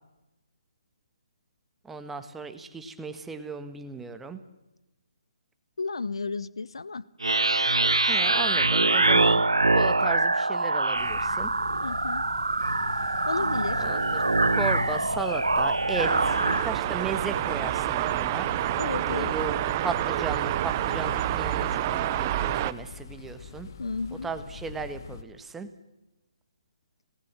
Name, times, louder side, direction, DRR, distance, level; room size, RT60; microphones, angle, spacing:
voice 1, 1.8-4.4 8.1-9.4 9.7-11.5 13.8-14.2 14.6-18.5 19.0-19.5 19.8-23.7 24.2-25.7, right 4 dB, 5° right, 8 dB, 1.5 m, -35 dB
voice 2, 5.8-7.0 11.8-12.2 13.3-13.8 18.8-19.3 23.8-24.3, left 4 dB, 70° left, 19 dB, 0.9 m, -32 dB
sound 1, 7.2-16.7, right 2 dB, 85° right, 0.8 m, -24 dB
sound 2, 10.9-25.2, left 6 dB, 45° left, 1.5 m, -42 dB
sound 3, 16.0-22.7, right 13 dB, 30° right, 0.8 m, -28 dB
27.5 x 18.5 x 7.5 m, 0.98 s
figure-of-eight pair, 145°, 3 cm